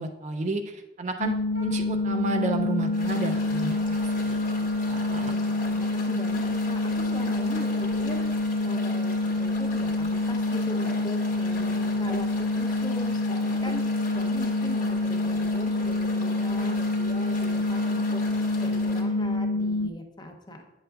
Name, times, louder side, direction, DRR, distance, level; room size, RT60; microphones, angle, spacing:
voice 1, 0.0-1.3 1.6-4.4 4.9-5.3 12.1-12.2, right 2 dB, 35° right, 5 dB, 0.4 m, -31 dB
sound 1, 1.2-19.9, left 2 dB, 75° left, 0.3 m, -27 dB
Wind instrument woodwind instrument, 1.5-19.6, right 5 dB, 75° right, 1.2 m, -46 dB
sound 2, 2.9-19.0, left 2 dB, 40° left, 1.0 m, -40 dB
voice 2, 5.2-8.3 8.6-12.3 12.6-13.8 14.1-18.2 18.6-20.6, equal, 20° left, 4 dB, 0.6 m, -39 dB
8.7 x 6.5 x 2.3 m, 0.99 s
head